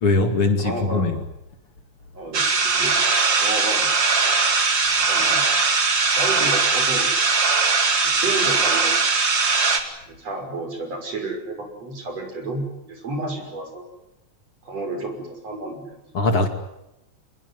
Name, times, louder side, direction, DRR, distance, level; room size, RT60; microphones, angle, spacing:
voice 1, 0.0-1.1 16.1-16.5, left 3 dB, 50° left, 6 dB, 3.2 m, -20 dB
voice 2, 0.6-1.2 2.1-3.0 3.4-3.9 5.1-5.4 6.1-7.1 8.0-9.0 10.1-13.8 14.7-16.0, right 2 dB, 60° right, 5 dB, 7.1 m, -31 dB
sound 1, 2.3-9.8, right 4 dB, 40° right, 3.1 m, -20 dB
27.5 x 21.0 x 9.7 m, 0.86 s
omnidirectional pair, 3.3 m